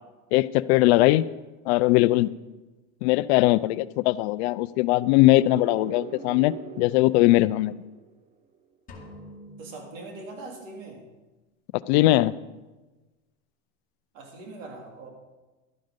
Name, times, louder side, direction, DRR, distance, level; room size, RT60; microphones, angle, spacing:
voice 1, 0.3-1.3 1.7-2.3 3.0-7.7 11.9-12.3, left 18 dB, 55° left, 17 dB, 0.5 m, -20 dB
sound 1, 4.8-8.6, right 7 dB, 20° right, 0.5 m, -43 dB
sound 2, 8.9-10.9, left 1 dB, 20° left, 2.0 m, -47 dB
voice 2, 9.6-11.0 14.1-15.1, right 2 dB, 75° right, 1 dB, 3.2 m, -41 dB
12.0 x 9.2 x 5.2 m, 1.2 s
supercardioid pair, 135°, 39 cm